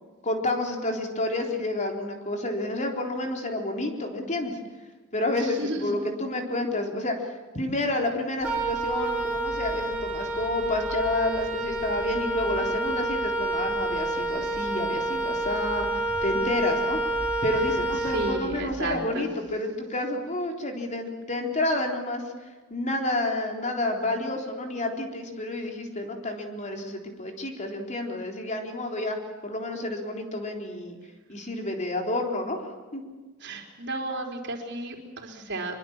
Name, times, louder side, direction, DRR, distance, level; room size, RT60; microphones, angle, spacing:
voice 1, 0.2-4.6 5.1-7.3 7.5-17.0 17.4-22.2 22.7-29.2 29.4-31.0 31.3-33.0, left 2 dB, 35° left, 3 dB, 3.8 m, -29 dB
voice 2, 5.3-6.0 18.1-19.3 33.4-35.8, right 2 dB, 55° right, 3 dB, 4.0 m, -33 dB
Wind instrument woodwind instrument, 8.4-18.8, right 2 dB, 10° right, 5.9 m, -29 dB
24.5 x 24.0 x 7.3 m, 1.3 s
head